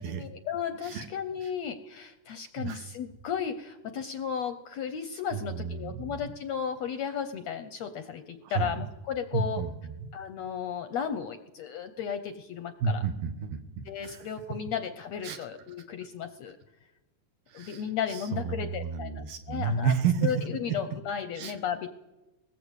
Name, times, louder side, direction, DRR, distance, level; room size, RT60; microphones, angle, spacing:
voice 1, 0.0-9.6 10.1-13.0 13.9-16.6 17.5-19.9 20.2-21.9, left 7 dB, 70° left, 9 dB, 1.6 m, -34 dB
voice 2, 5.3-6.2 8.4-8.9 9.3-10.1 12.8-14.3 15.2-15.4 17.5-20.3 21.4-21.5, right 6 dB, 80° right, 7 dB, 3.0 m, -31 dB
21.5 x 18.5 x 8.3 m, 1.1 s
omnidirectional pair, 4.0 m